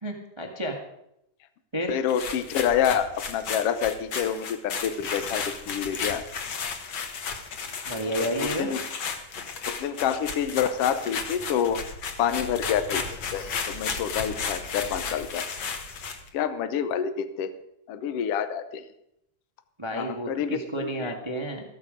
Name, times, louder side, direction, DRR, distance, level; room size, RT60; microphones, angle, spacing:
voice 1, 0.0-0.8 1.7-1.9 7.8-8.7 19.8-21.6, right 1 dB, 35° right, 2 dB, 0.4 m, -31 dB
voice 2, 1.9-6.2 8.1-8.8 9.7-11.8 12.2-15.4 16.3-17.5 17.9-18.8 19.9-21.1, left 8 dB, 75° left, 10 dB, 1.4 m, -28 dB
sound 1, 2.1-16.3, left 5 dB, 55° left, 1.5 m, -34 dB
14.5 x 13.0 x 5.0 m, 0.80 s
omnidirectional pair, 3.7 m